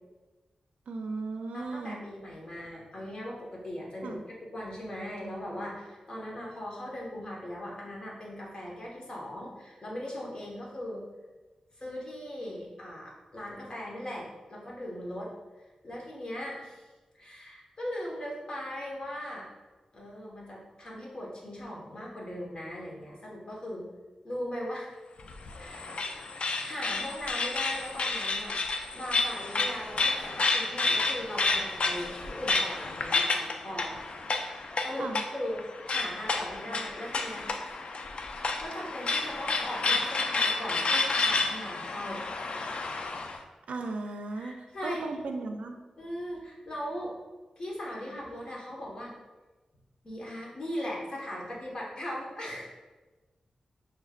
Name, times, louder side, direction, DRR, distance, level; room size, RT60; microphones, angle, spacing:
voice 1, 0.9-2.1 4.0-4.2 35.0-35.2 43.7-45.8, right 3 dB, 85° right, 5 dB, 0.4 m, -36 dB
voice 2, 1.5-11.0 11.8-15.3 15.8-16.8 17.2-19.5 19.9-23.9 24.2-24.9 25.6-26.0 26.6-28.6 28.9-34.0 34.4-35.1 35.3-38.0 38.6-42.2 44.3-45.1 46.0-47.2 47.6-49.1 50.0-52.7, equal, 40° left, -4 dB, 1.3 m, -39 dB
sound 1, 25.2-43.4, left 3 dB, 60° left, 0.4 m, -30 dB
6.2 x 3.2 x 2.4 m, 1.2 s
cardioid pair, 75°, 2 cm